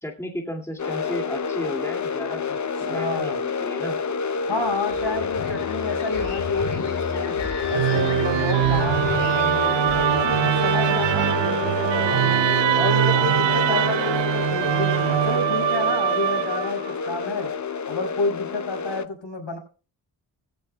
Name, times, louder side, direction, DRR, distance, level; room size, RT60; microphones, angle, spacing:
voice 1, 0.0-2.4 2.8-4.0, equal, 5° left, 2 dB, 2.3 m, -34 dB
sound 1, 0.8-19.0, left 6 dB, 35° left, 0.7 m, -28 dB
voice 2, 2.9-3.4 4.5-7.4 7.7-12.4 12.7-17.5 17.9-19.6, left 2 dB, 60° left, 2 dB, 5.7 m, -30 dB
sound 2, 4.6-11.3, left 5 dB, 80° left, 3.2 m, -34 dB
Musical instrument, 7.7-16.9, right 12 dB, 60° right, 0.6 m, -22 dB
16.5 x 15.0 x 2.2 m, 0.36 s
cardioid pair, 50°, 48 cm